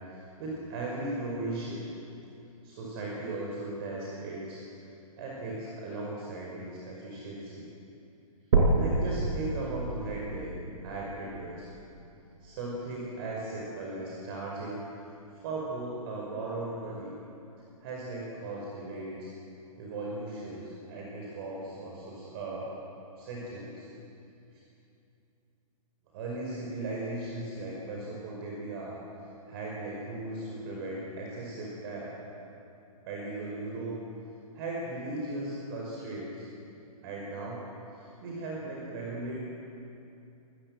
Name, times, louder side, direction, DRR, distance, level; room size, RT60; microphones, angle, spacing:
voice 1, 0.1-1.8 2.6-4.6 5.2-7.7 8.7-11.7 12.4-14.8 15.3-17.1 17.8-19.3 19.8-22.7 23.2-23.9 26.1-29.0 29.5-32.1 33.0-34.0 34.5-36.4 37.0-37.7 37.9-39.4, right 2 dB, 40° right, -3 dB, 5.5 m, -37 dB
sound 1, 8.5-12.5 13.1-13.2 13.7-13.8 14.2-14.3 15.1-15.2, right 3 dB, 65° right, 5.5 m, -29 dB
26.0 x 20.5 x 7.9 m, 2.7 s
hypercardioid pair, 145°, 19 cm